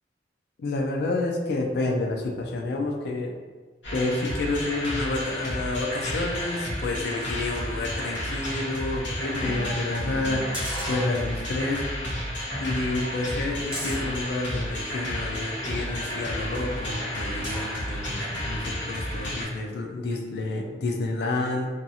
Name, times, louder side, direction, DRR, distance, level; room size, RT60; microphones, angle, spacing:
voice 1, 0.6-3.4 3.9-11.8 12.2-12.3 12.6-21.7, left 2 dB, 60° left, 2 dB, 0.4 m, -29 dB
sound 1, 3.8-19.4, equal, 75° left, 0.9 m, -32 dB
sound 2, 9.4-11.6 12.0-12.1 12.5-15.0 15.7-17.9 18.3-18.4, equal, 5° right, 0.6 m, -39 dB
2.6 x 2.3 x 2.7 m, 1.4 s
head